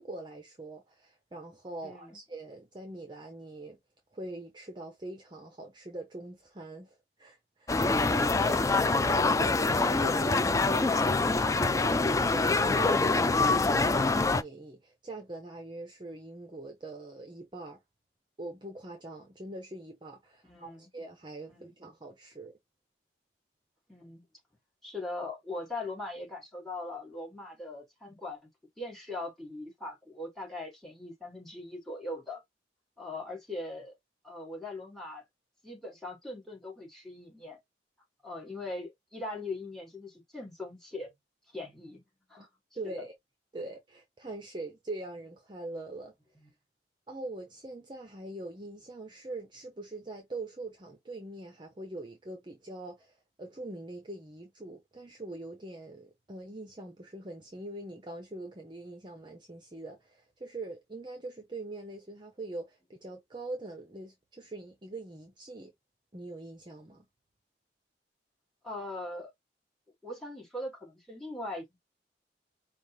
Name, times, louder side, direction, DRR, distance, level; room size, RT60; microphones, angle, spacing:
voice 1, 0.0-3.8 4.1-8.5 9.1-17.8 18.4-22.6 42.4-42.5 42.7-43.1 43.5-46.1 47.1-65.7 66.1-67.1, right 2 dB, 25° right, 0.7 m, -43 dB
voice 2, 1.8-2.2 8.3-8.7 20.4-20.9 21.5-21.7 23.9-24.2 24.8-28.5 28.8-32.4 33.0-34.0 34.2-35.2 35.6-37.6 38.2-41.1 41.5-42.0 42.3-42.5 42.8-43.1 46.4-46.5 68.6-69.3 70.0-71.8, left 2 dB, ahead, 2.1 m, -40 dB
sound 1, 7.7-14.4, left 3 dB, 20° left, 0.3 m, -25 dB
5.2 x 2.4 x 3.1 m
head